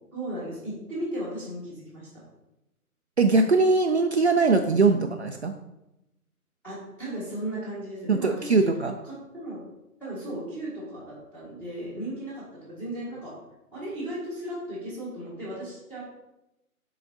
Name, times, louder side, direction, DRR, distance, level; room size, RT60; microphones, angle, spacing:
voice 1, 0.1-2.2 4.9-5.0 6.6-8.7 9.0-9.6 10.0-13.3 13.7-16.0, right 1 dB, 5° left, -10 dB, 1.7 m, -36 dB
voice 2, 3.2-5.5 8.1-8.9, right 3 dB, 50° right, 4 dB, 0.5 m, -21 dB
12.0 x 4.9 x 2.7 m, 0.92 s
figure-of-eight pair, 160°, 44 cm